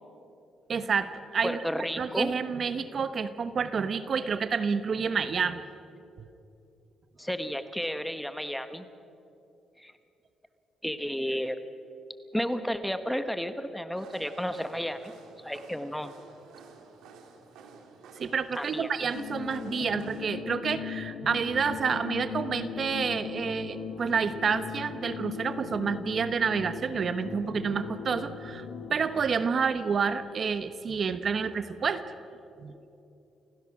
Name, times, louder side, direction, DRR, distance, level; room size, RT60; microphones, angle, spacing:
voice 1, 0.7-1.6 2.0-5.6 18.2-28.6 28.9-32.0 32.6-32.7, right 6 dB, 50° right, 12 dB, 1.0 m, -29 dB
voice 2, 1.4-2.3 7.2-8.9 9.8-9.9 10.8-11.6 12.3-15.1 15.4-16.1 18.5-18.9 32.7-32.8, equal, 5° left, 9 dB, 1.3 m, -32 dB
sound 1, 13.9-20.2, right 5 dB, 90° right, 2.2 m, -51 dB
sound 2, 19.1-29.1, left 7 dB, 90° left, 1.7 m, -38 dB
29.5 x 16.0 x 6.2 m, 2.8 s
cardioid pair, 90°, 0 cm